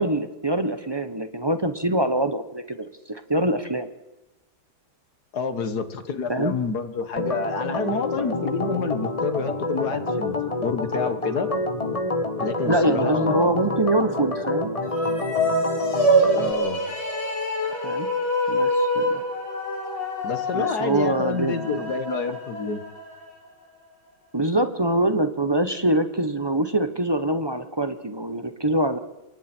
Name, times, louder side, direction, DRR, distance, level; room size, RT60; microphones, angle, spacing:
voice 1, 0.0-3.9 6.3-6.5 12.7-14.7 17.8-18.1 18.5-19.2 20.5-21.9 24.3-29.0, right 1 dB, 20° right, 9 dB, 0.7 m, -24 dB
voice 2, 5.3-11.5 12.4-13.6 16.4-16.9 20.2-22.8, left 5 dB, 55° left, 9 dB, 2.0 m, -28 dB
Organ, 7.2-16.5, left 2 dB, 20° left, 1.2 m, -27 dB
sound 1, 14.8-23.3, equal, 85° left, 4.9 m, -25 dB
27.5 x 23.5 x 4.5 m, 1.0 s
omnidirectional pair, 2.1 m